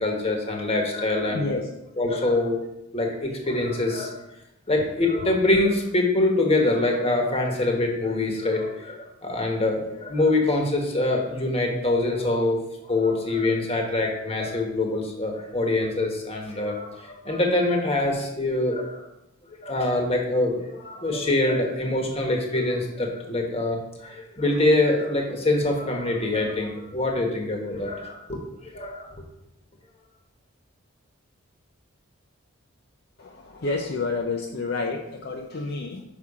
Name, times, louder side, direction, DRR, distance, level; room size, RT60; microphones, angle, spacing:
voice 1, 0.0-1.6 2.0-2.6 2.9-4.2 4.7-12.6 12.9-19.0 19.6-29.1, left 2 dB, 30° left, 1 dB, 1.2 m, -24 dB
voice 2, 1.3-1.7 33.2-36.0, left 3 dB, 50° left, 1 dB, 0.5 m, -29 dB
6.0 x 5.6 x 4.8 m, 0.89 s
head